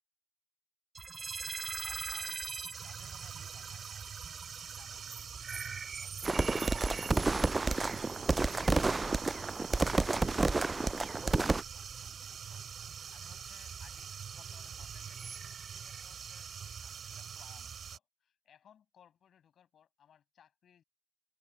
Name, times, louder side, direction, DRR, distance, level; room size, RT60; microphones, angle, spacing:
sound 1, 0.9-18.0, right 5 dB, 50° right, 1.4 m, -46 dB
voice 1, 1.8-12.6 13.1-15.4 15.6-16.5 16.8-20.8, left 9 dB, 75° left, 6.6 m, -64 dB
sound 2, 2.7-18.0, right 8 dB, 70° right, 4.0 m, -45 dB
sound 3, 6.2-11.6, right 3 dB, 30° right, 0.3 m, -30 dB
supercardioid pair, 55°, 0 cm